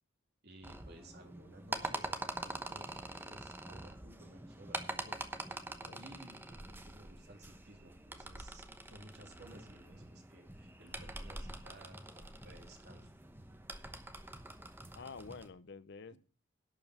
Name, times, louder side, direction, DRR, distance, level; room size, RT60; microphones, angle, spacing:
voice 1, 0.4-5.2 6.0-13.1, right 1 dB, 55° right, 3 dB, 2.7 m, -57 dB
sound 1, 0.6-15.5, right 2 dB, 10° right, 0.9 m, -45 dB
voice 2, 14.9-16.2, left 4 dB, 60° left, 14 dB, 0.6 m, -49 dB
11.5 x 5.4 x 7.9 m, 0.39 s
head